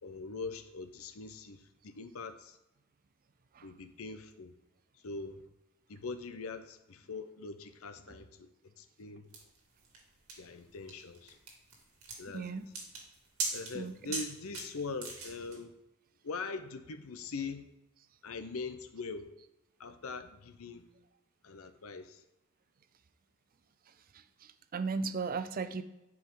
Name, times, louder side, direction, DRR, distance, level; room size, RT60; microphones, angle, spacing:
voice 1, 0.0-2.6 3.6-4.5 5.0-5.4 5.9-9.3 10.4-11.4 12.2-12.7 13.5-15.7 16.2-17.7 18.2-19.3 19.8-20.9 21.4-22.2, left 4 dB, 75° left, 9 dB, 0.7 m, -42 dB
sound 1, 9.3-15.6, right 3 dB, 90° right, 2.1 m, -41 dB
voice 2, 12.3-12.7 13.7-13.9 24.7-25.8, right 4 dB, 40° right, 12 dB, 0.5 m, -35 dB
11.0 x 4.8 x 3.7 m, 0.94 s
head